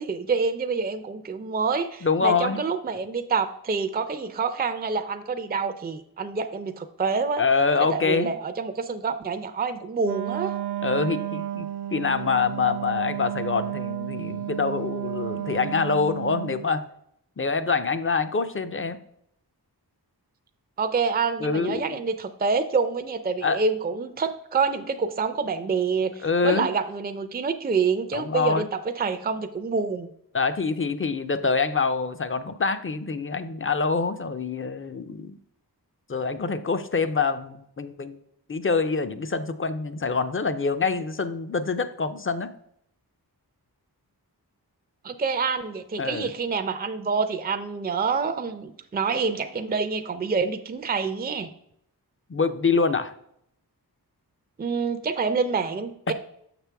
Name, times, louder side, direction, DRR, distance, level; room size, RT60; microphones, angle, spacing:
voice 1, 0.0-7.4 7.9-10.5 20.8-30.1 45.0-51.5 54.6-56.1, right 5 dB, 25° right, 9 dB, 0.5 m, -27 dB
voice 2, 2.0-2.6 7.4-8.3 10.8-11.7 11.9-16.8 17.4-19.0 21.4-22.0 23.4-23.6 26.2-26.7 28.1-28.7 30.3-35.4 36.1-38.2 38.5-42.5 46.0-46.3 52.3-53.1 56.1-56.2, left 4 dB, 35° left, 11 dB, 0.5 m, -25 dB
Wind instrument woodwind instrument, 10.0-16.7, right 12 dB, 75° right, 0.6 m, -32 dB
6.4 x 6.0 x 3.4 m, 0.72 s
wide cardioid pair, 55°, 39 cm